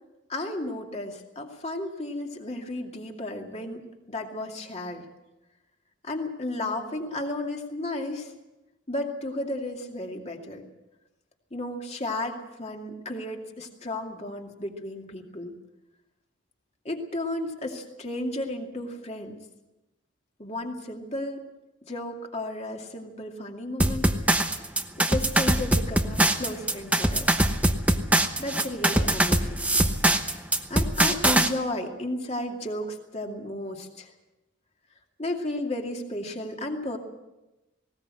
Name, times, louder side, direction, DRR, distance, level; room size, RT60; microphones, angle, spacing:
voice 1, 0.3-5.1 6.0-8.3 8.9-10.6 11.5-15.6 16.8-19.4 20.4-21.4 21.8-24.5 25.0-27.5 27.9-28.0 28.4-30.0 30.7-34.1 35.2-37.0, left 1 dB, 30° left, 2 dB, 2.4 m, -33 dB
sound 1, 23.8-31.5, right 1 dB, 5° right, 0.9 m, -22 dB
19.5 x 18.0 x 7.7 m, 1.0 s
head